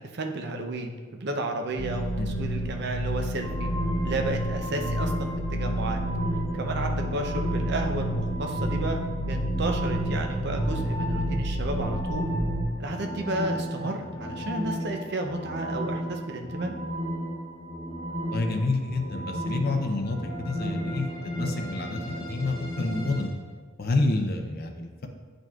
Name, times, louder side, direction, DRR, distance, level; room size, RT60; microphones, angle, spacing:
voice 1, 0.0-2.1 2.4-3.7 4.0-6.0 6.5-9.0 9.2-12.3 12.8-16.8, right 2 dB, 55° right, 3 dB, 0.7 m, -32 dB
sound 1, 1.8-12.6, equal, 85° right, 1.1 m, -30 dB
sound 2, 3.4-23.3, equal, 20° left, 1.5 m, -34 dB
voice 2, 18.2-21.1 21.4-23.3 23.8-25.1, left 2 dB, 50° left, 3 dB, 0.6 m, -28 dB
9.0 x 5.1 x 2.4 m, 1.5 s
head